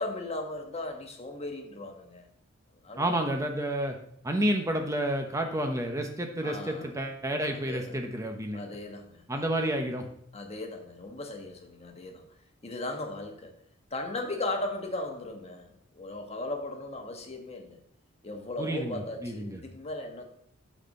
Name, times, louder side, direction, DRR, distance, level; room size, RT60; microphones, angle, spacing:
voice 1, 0.0-2.3 2.8-3.1 6.4-6.9 7.5-8.0 8.5-9.7 10.3-12.3 12.6-13.5 13.9-17.8 18.2-20.2, left 2 dB, 30° left, 4 dB, 1.2 m, -37 dB
voice 2, 3.0-4.0 4.2-8.6 9.3-10.0 18.6-19.6, right 1 dB, 15° right, 4 dB, 0.7 m, -30 dB
8.2 x 4.3 x 6.4 m, 0.69 s
head